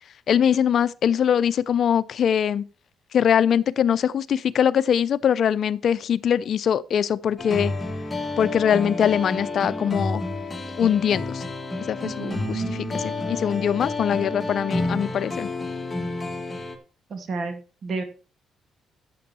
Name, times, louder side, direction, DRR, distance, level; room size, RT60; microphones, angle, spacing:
voice 1, 0.3-2.6 3.1-7.7 8.4-10.2 10.8-11.5 11.9-15.5, left 8 dB, 60° left, 0.6 m, -22 dB
sound 1, 7.4-16.8, left 2 dB, 20° left, 2.0 m, -30 dB
voice 2, 12.0-13.0 17.1-18.0, right 4 dB, 50° right, 2.1 m, -32 dB
11.0 x 7.7 x 4.4 m
cardioid pair, 90°, 0 cm